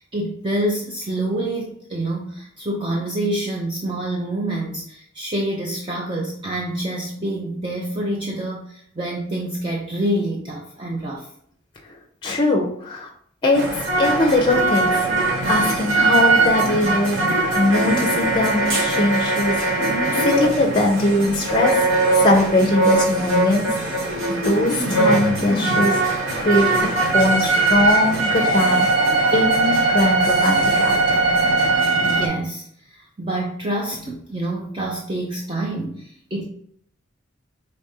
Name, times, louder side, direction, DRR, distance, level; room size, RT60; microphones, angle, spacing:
voice 1, 0.0-11.3 32.0-36.5, right 1 dB, 25° right, -2 dB, 0.5 m, -27 dB
voice 2, 12.2-13.1 13.4-13.6 14.0-15.1 15.5-26.7 27.1-28.9 29.3-31.2, left 2 dB, 20° left, 0 dB, 0.6 m, -21 dB
sound 1, 13.5-32.3, right 2 dB, 70° right, 1.1 m, -20 dB
5.0 x 3.2 x 2.7 m, 0.65 s
head